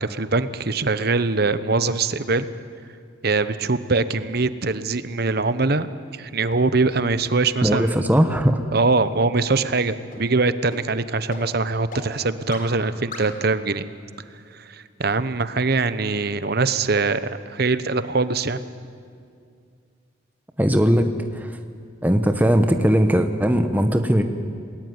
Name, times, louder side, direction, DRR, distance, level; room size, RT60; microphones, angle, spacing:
voice 1, 0.0-2.5 3.2-5.9 6.1-8.1 8.7-13.9 14.5-18.6, right 3 dB, 55° right, 13 dB, 1.0 m, -22 dB
sound 1, 6.5-6.6 7.1-7.2 7.7-7.8 8.3-8.4 8.9-9.0 9.5-9.6 10.1-10.2 10.7-10.8 11.3-11.4 11.9-12.0 12.5-12.6 13.1-13.2, left 3 dB, 45° left, 4.2 m, -37 dB
voice 2, 7.6-8.6 20.6-21.1 21.3-21.5 22.0-24.2, equal, 10° right, 6 dB, 1.2 m, -19 dB
27.5 x 19.5 x 9.7 m, 2.3 s
head